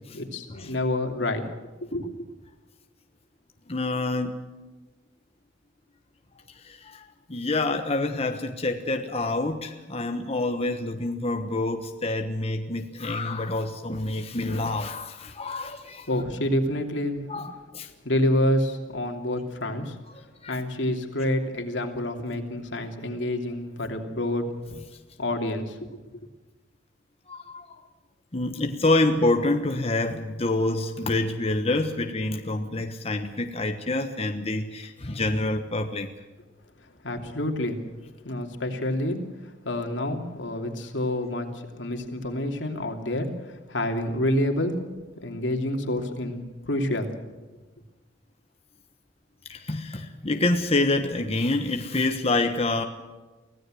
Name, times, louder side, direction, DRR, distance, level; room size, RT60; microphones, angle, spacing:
voice 1, 0.1-1.4 1.9-2.3 16.1-17.2 18.0-20.0 20.5-24.5 25.2-25.9 37.0-37.8 38.2-44.8 45.2-47.1, left 1 dB, 80° left, 4 dB, 3.0 m, -28 dB
voice 2, 3.7-4.4 6.6-16.1 17.3-17.9 20.4-20.6 27.3-27.8 28.3-36.1 49.5-52.8, left 2 dB, 35° left, 5 dB, 1.3 m, -27 dB
24.5 x 16.5 x 7.8 m, 1.2 s
head